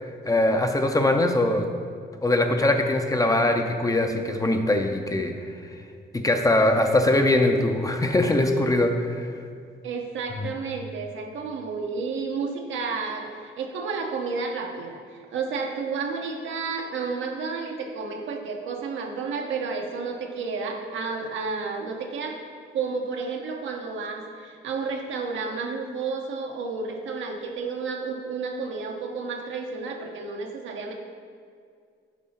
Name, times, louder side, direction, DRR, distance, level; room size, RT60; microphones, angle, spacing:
voice 1, 0.3-1.7 2.2-5.3 6.1-9.3 10.4-10.5, left 1 dB, 15° left, 5 dB, 0.5 m, -22 dB
voice 2, 9.8-15.0 15.3-22.4 22.7-30.9, right 4 dB, 75° right, 2 dB, 0.9 m, -31 dB
7.2 x 4.2 x 4.2 m, 2.2 s
cardioid pair, 90°, 20 cm